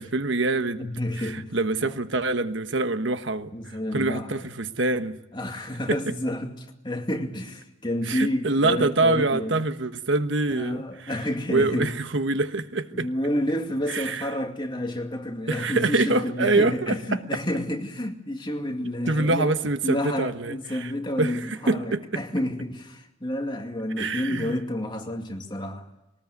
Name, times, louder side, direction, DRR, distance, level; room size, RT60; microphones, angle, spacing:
voice 1, 0.0-0.9 1.2-5.2 5.9-6.1 8.0-11.2 11.5-13.1 13.9-14.3 15.5-17.2 19.1-20.9 21.2-22.0 24.0-24.6, right 2 dB, 65° right, 1.2 m, -25 dB
voice 2, 0.8-1.6 1.8-2.0 3.5-4.5 5.3-9.5 10.5-11.9 12.9-19.6 19.8-25.9, left 1 dB, 25° left, 2.3 m, -30 dB
22.0 x 19.5 x 9.4 m
head